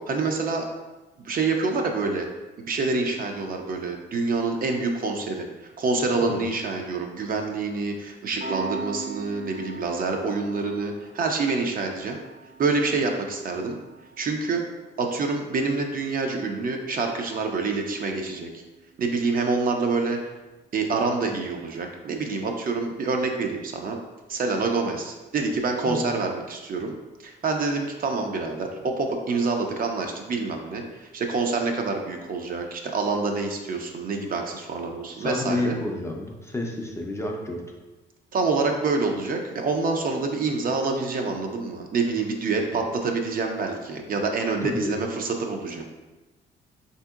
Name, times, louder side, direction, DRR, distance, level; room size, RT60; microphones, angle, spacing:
voice 1, 0.1-0.7 1.2-2.3 2.6-12.2 12.6-13.8 14.2-14.6 15.0-18.6 19.0-20.2 20.7-24.0 24.3-26.9 27.2-35.8 38.3-45.9, right 3 dB, 45° right, 3 dB, 0.4 m, -27 dB
Piano, 8.4-19.5, right 4 dB, 75° right, 1.2 m, -42 dB
voice 2, 35.1-37.6 44.6-44.9, left 2 dB, 15° left, 0 dB, 0.4 m, -30 dB
3.5 x 2.7 x 2.3 m, 1.1 s
cardioid pair, 90°, 20 cm